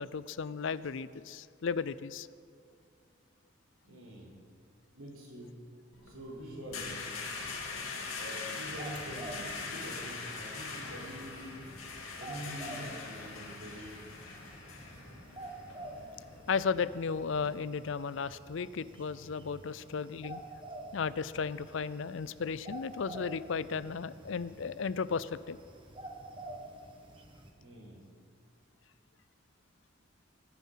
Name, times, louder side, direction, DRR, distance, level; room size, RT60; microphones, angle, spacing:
voice 1, 0.0-2.3 16.5-20.4 20.9-25.6, left 5 dB, 65° left, 17 dB, 0.4 m, -35 dB
voice 2, 3.8-4.3 4.9-5.7 6.0-7.1 8.1-11.7 12.2-14.0 27.6-28.0, equal, 90° right, -2 dB, 4.0 m, -45 dB
sound 1, 5.9-17.5, left 4 dB, 90° left, 2.4 m, -42 dB
sound 2, 8.7-27.5, right 1 dB, 25° right, 1.2 m, -49 dB
21.5 x 9.4 x 5.7 m, 2.3 s
head